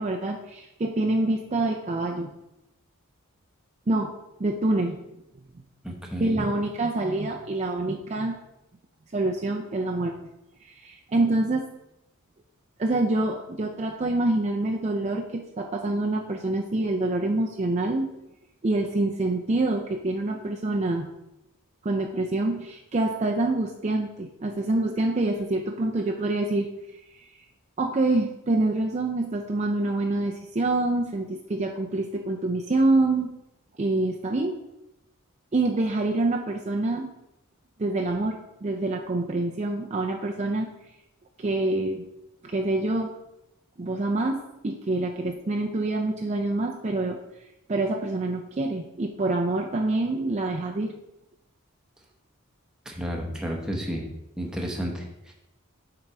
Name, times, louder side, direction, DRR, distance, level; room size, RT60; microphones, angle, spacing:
voice 1, 0.0-2.3 3.9-4.1 4.4-5.0 6.2-8.3 9.1-10.2 10.6-11.7 12.8-18.1 18.6-21.1 21.8-26.7 27.1-27.3 27.8-33.3 33.8-34.6 35.5-37.1 37.8-40.7 41.4-42.0 42.4-43.1 43.8-47.2 47.7-50.9, right 2 dB, 30° right, 1 dB, 0.5 m, -26 dB
voice 2, 5.8-6.3 52.9-54.1 54.4-55.3, equal, 5° right, 0 dB, 0.9 m, -32 dB
7.2 x 3.9 x 4.7 m, 0.89 s
head